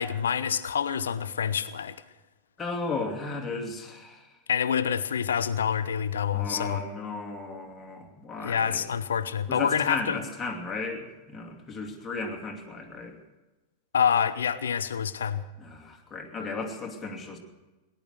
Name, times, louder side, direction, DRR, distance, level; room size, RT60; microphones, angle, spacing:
voice 1, 0.0-2.0 4.5-6.8 8.4-10.2 13.9-15.4, left 8 dB, 65° left, 15 dB, 0.7 m, -27 dB
voice 2, 2.6-4.3 6.3-8.8 9.5-13.2 15.6-17.4, left 3 dB, 15° left, 0 dB, 2.6 m, -35 dB
18.5 x 11.0 x 6.6 m, 1.1 s
figure-of-eight pair, 90°, 0 cm